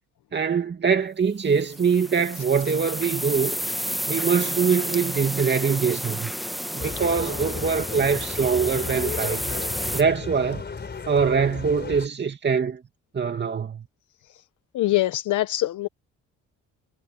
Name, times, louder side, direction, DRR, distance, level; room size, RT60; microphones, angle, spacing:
voice 1, 0.3-3.6 4.1-6.3 6.7-9.6 9.9-10.6 11.1-12.8 13.1-13.9, right 6 dB, 35° right, 2.4 m, -23 dB
sound 1, 1.5-10.0, equal, ahead, 1.4 m, -31 dB
sound 2, 6.8-12.1, left 5 dB, 35° left, 4.3 m, -34 dB
voice 2, 14.7-15.9, left 16 dB, 80° left, 1.0 m, -24 dB
cardioid pair, 90°, 30 cm